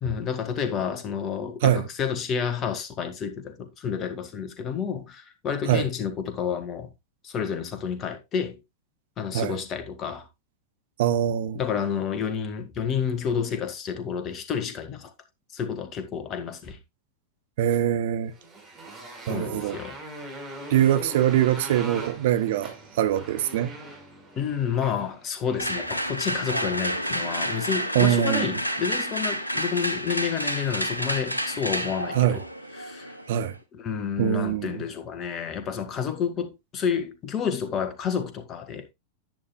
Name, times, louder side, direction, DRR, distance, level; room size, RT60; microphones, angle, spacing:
voice 1, 0.0-6.9 7.2-8.6 9.2-10.3 11.5-15.1 15.5-16.8 19.3-20.0 24.4-32.4 32.8-33.2 33.7-38.9, left 7 dB, 30° left, 1.5 m, -30 dB
voice 2, 11.0-11.6 17.6-18.3 19.3-19.8 20.7-23.7 27.9-28.6 32.1-32.4 33.3-33.5 34.2-34.8, right 11 dB, 55° right, 0.7 m, -23 dB
Motorcycle, 18.3-25.7, right 2 dB, 20° right, 5.3 m, -41 dB
sound 1, 25.6-33.6, equal, 85° left, 0.9 m, -30 dB
10.5 x 8.9 x 2.3 m
figure-of-eight pair, 90°, 0 cm